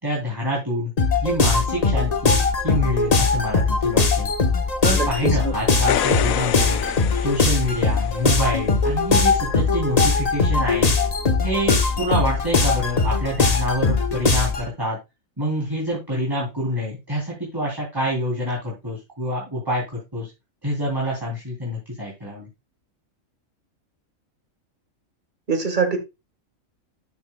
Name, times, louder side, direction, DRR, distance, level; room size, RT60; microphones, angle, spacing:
voice 1, 0.0-0.9 1.2-4.3 4.8-6.8 7.1-10.9 11.4-15.0 15.4-19.8 20.1-20.3 20.6-22.5, equal, 15° right, 3.1 m, -26 dB
sound 1, 1.0-14.7, left 4 dB, 30° left, 1.1 m, -20 dB
voice 2, 4.9-5.8 25.5-26.0, right 4 dB, 35° right, 1.7 m, -24 dB
sound 2, 5.7-8.2 11.3-11.4, left 10 dB, 80° left, 1.0 m, -27 dB
12.0 x 7.6 x 2.2 m
omnidirectional pair, 1.4 m